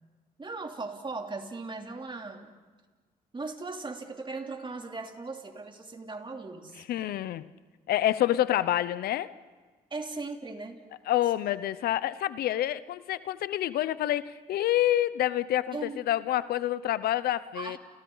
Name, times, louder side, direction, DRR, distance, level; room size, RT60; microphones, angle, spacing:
voice 1, 0.4-2.5 3.3-6.8 9.9-10.8 15.7-16.0 17.5-17.8, right 3 dB, 30° right, 3 dB, 3.1 m, -38 dB
voice 2, 6.8-7.5 7.9-9.3 11.1-17.8, left 13 dB, 75° left, 16 dB, 0.7 m, -27 dB
30.0 x 29.5 x 4.0 m, 1.4 s
supercardioid pair, 60°, 16 cm